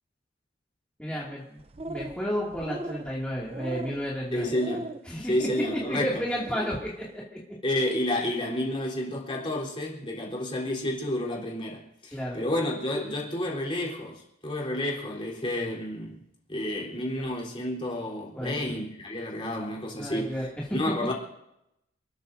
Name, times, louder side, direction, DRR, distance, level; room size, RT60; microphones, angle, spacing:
voice 1, 1.0-1.6 1.9-4.5 5.1-7.2 12.1-12.4 17.2-17.3 18.4-18.7 19.9-20.5, equal, 5° left, 2.4 m, -32 dB
sound 1, 1.6-2.3 2.5-3.1 3.5-4.1 4.5-5.0 5.4-5.9 6.3-6.8, right 1 dB, 30° right, 0.7 m, -38 dB
voice 2, 4.3-4.9 5.2-6.2 7.6-16.2 16.5-20.3 20.7-21.1, left 1 dB, 30° left, 3.7 m, -30 dB
28.5 x 13.0 x 2.7 m
head